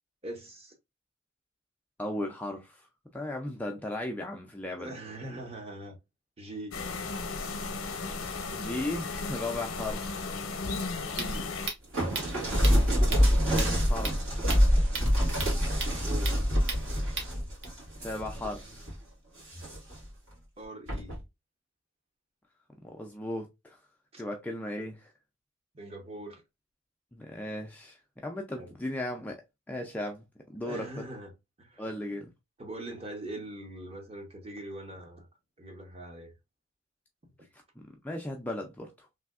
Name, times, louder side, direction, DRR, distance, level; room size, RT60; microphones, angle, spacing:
voice 1, 0.2-0.7 4.8-6.0 6.4-6.8 8.0-8.1 11.1-11.5 16.0-16.4 20.6-21.2 24.1-24.2 25.7-26.4 28.6-28.7 30.6-31.3 31.6-31.8 32.6-35.3 35.6-36.3, right 1 dB, 30° right, 0.7 m, -42 dB
voice 2, 2.0-4.9 7.9-8.2 8.5-10.3 13.5-14.4 18.0-18.9 22.8-23.8 24.2-25.1 27.1-29.4 29.7-31.1 31.8-32.3 37.5-39.1, left 1 dB, 5° left, 0.3 m, -37 dB
sound 1, 6.7-11.7, left 3 dB, 80° left, 0.7 m, -35 dB
sound 2, 10.7-17.6, right 4 dB, 60° right, 1.0 m, -39 dB
sound 3, 11.9-18.9 19.4-20.0 20.9-21.2, equal, 75° right, 1.8 m, -26 dB
3.2 x 2.7 x 2.3 m
head